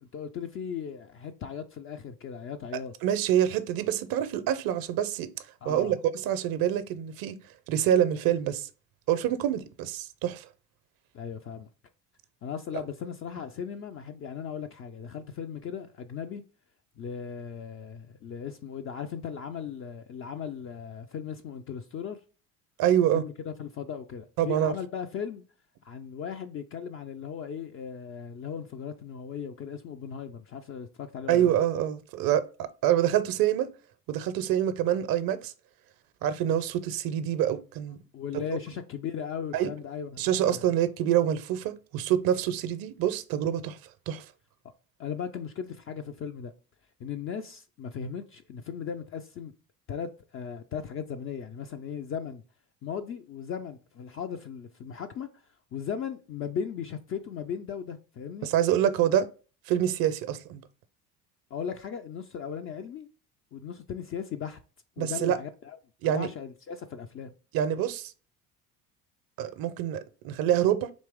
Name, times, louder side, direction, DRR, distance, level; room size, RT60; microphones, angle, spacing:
voice 1, 0.0-2.9 5.6-5.9 11.1-11.7 12.4-16.4 17.0-22.2 23.1-25.4 25.8-31.5 38.1-40.6 45.0-46.5 47.0-49.5 49.9-52.4 52.8-55.3 55.7-58.5 61.5-63.1 63.5-64.6 65.0-65.8 66.0-67.3, left 7 dB, 30° left, 0.3 m, -37 dB
voice 2, 3.0-5.3 5.7-7.4 7.7-8.7 9.1-10.5 22.8-23.2 24.4-24.7 31.3-33.7 34.1-35.5 36.2-38.0 39.5-39.7 40.2-43.8 44.1-44.2 58.4-59.3 59.7-60.6 65.0-65.4 66.0-66.3 67.5-68.1 69.4-70.9, right 10 dB, 50° right, 0.6 m, -26 dB
4.2 x 2.9 x 3.4 m
hypercardioid pair, 65°, 48 cm